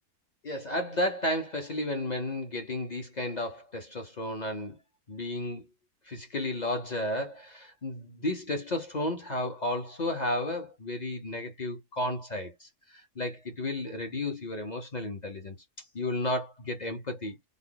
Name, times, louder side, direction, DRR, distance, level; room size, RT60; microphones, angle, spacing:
voice 1, 0.4-4.8 5.1-5.7 6.1-12.7 13.2-15.5 15.9-17.4, left 1 dB, 40° left, 0.6 m, -33 dB
3.4 x 2.1 x 3.8 m
omnidirectional pair, 1.6 m